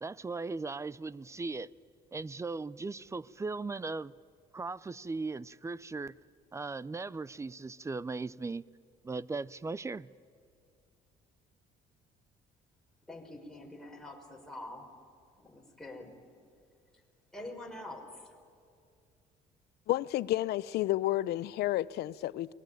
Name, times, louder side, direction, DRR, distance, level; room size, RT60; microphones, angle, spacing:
voice 1, 0.0-1.7 2.1-4.1 4.5-6.2 6.5-8.6 9.0-10.1, right 3 dB, 15° right, 0.6 m, -38 dB
voice 2, 13.1-14.9 15.4-16.1 17.3-18.3, left 1 dB, 5° left, 5.3 m, -45 dB
voice 3, 19.9-22.5, left 15 dB, 75° left, 0.6 m, -31 dB
29.0 x 21.0 x 9.2 m
cardioid pair, 110°, 17 cm